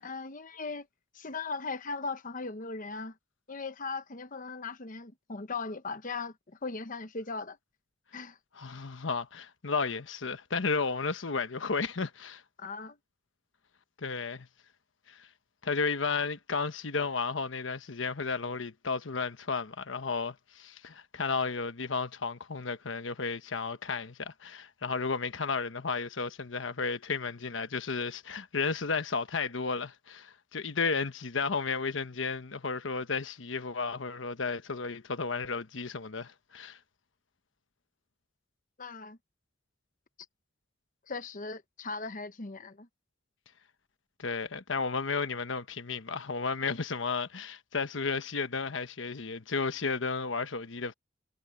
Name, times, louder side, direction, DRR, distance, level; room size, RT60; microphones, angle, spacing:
voice 1, 0.0-0.9 1.1-3.2 3.5-7.6 8.1-8.4 12.6-13.0 38.8-39.2 41.1-42.9, left 4 dB, 45° left, 1.0 m, -38 dB
voice 2, 8.6-12.4 14.0-14.5 15.1-15.3 15.6-36.8 44.2-50.9, left 4 dB, 90° left, 1.1 m, -33 dB
head